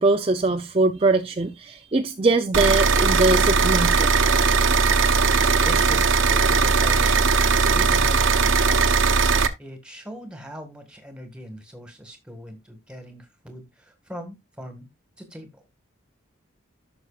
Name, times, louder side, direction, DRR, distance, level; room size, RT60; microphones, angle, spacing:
voice 1, 0.0-4.1, right 3 dB, 30° right, 0.5 m, -22 dB
sound 1, 2.5-9.5, right 4 dB, 70° right, 0.8 m, -19 dB
voice 2, 5.6-7.2 7.7-9.3 9.6-14.9 15.2-15.6, equal, 5° right, 1.6 m, -40 dB
13.5 x 6.1 x 2.4 m
head